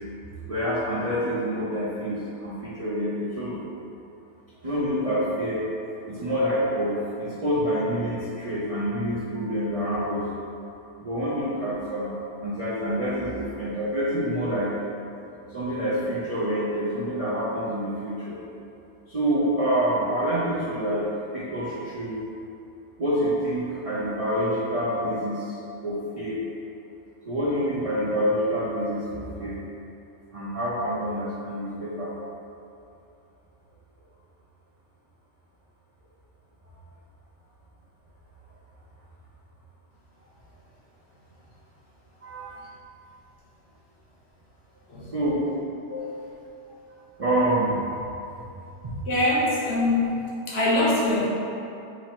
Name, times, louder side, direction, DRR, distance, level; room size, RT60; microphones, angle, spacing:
voice 1, 0.5-3.6 4.6-5.6 6.1-10.2 11.0-12.2 12.4-14.7 15.5-18.4 19.1-21.1 21.3-22.2 23.0-25.6 25.8-26.4 27.3-29.6 30.3-32.1 42.2-42.5 45.1-45.4 47.2-47.7 48.8-48.9, equal, 50° right, -10 dB, 0.4 m, -27 dB
voice 2, 45.9-46.5 48.2-48.3 49.1-51.2, left 2 dB, 55° left, -7 dB, 1.0 m, -24 dB
3.0 x 2.8 x 4.2 m, 2.7 s
omnidirectional pair, 1.5 m